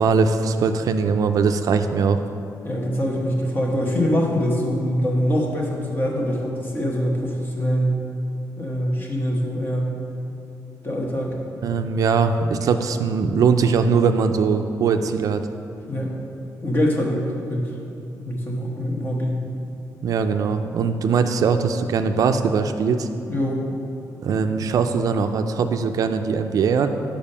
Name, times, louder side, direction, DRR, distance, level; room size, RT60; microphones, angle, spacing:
voice 1, 0.0-2.2 11.6-15.5 20.0-23.1 24.2-26.9, right 5 dB, 55° right, 7 dB, 0.3 m, -21 dB
voice 2, 2.6-8.0 8.6-10.0 10.8-11.4 15.8-16.2 16.6-17.8 18.2-19.4 23.3-23.6, equal, 30° left, -1 dB, 1.1 m, -24 dB
7.1 x 5.0 x 5.5 m, 2.7 s
wide cardioid pair, 160°, 7 cm